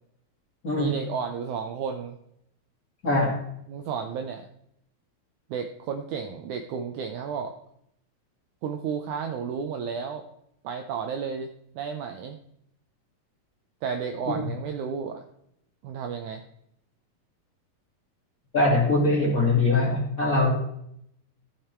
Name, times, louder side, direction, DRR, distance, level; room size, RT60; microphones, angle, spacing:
voice 1, 0.7-2.2 3.7-4.5 5.5-7.5 8.6-10.3 10.6-12.4 13.8-15.2 15.8-16.4, right 6 dB, 75° right, 5 dB, 1.9 m, -32 dB
voice 2, 3.0-3.4 18.5-20.5, left 2 dB, 25° left, -4 dB, 2.7 m, -22 dB
14.0 x 6.7 x 4.4 m, 0.74 s
omnidirectional pair, 4.1 m